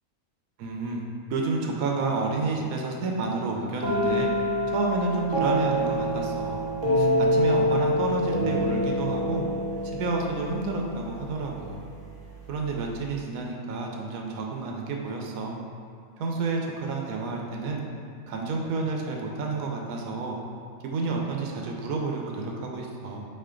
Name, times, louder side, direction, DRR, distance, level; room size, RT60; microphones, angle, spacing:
voice 1, 0.6-1.0 1.3-4.3 4.7-6.6 7.0-9.4 9.8-11.8 12.5-15.5 16.2-17.8 18.3-20.4 20.8-23.2, right 3 dB, 80° right, 0 dB, 1.0 m, -30 dB
sound 1, 3.8-11.5, equal, 65° right, 1.3 m, -26 dB
3.7 x 3.3 x 3.7 m, 2.3 s
omnidirectional pair, 1.5 m